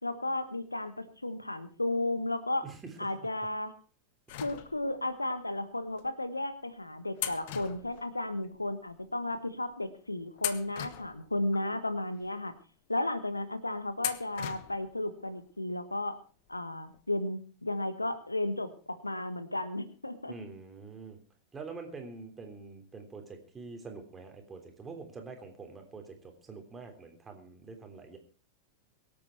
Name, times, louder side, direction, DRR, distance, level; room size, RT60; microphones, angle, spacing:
voice 1, 0.0-2.6 3.0-3.7 4.4-12.5 12.9-16.2 16.5-20.3, left 1 dB, 85° left, 12 dB, 1.3 m, -34 dB
voice 2, 2.6-3.3 20.3-21.2 21.5-28.2, right 4 dB, 15° right, 4 dB, 3.5 m, -45 dB
sound 1, 4.3-5.1 5.9-6.1 7.2-8.6 8.9-9.0 9.7-9.9 10.4-11.7 12.2-12.3 14.0-14.9 15.2-15.3 16.5-16.6 16.9-17.0, left 13 dB, 50° left, 1.2 m, -39 dB
23.5 x 8.7 x 4.5 m, 0.38 s
figure-of-eight pair, 90°, 0 cm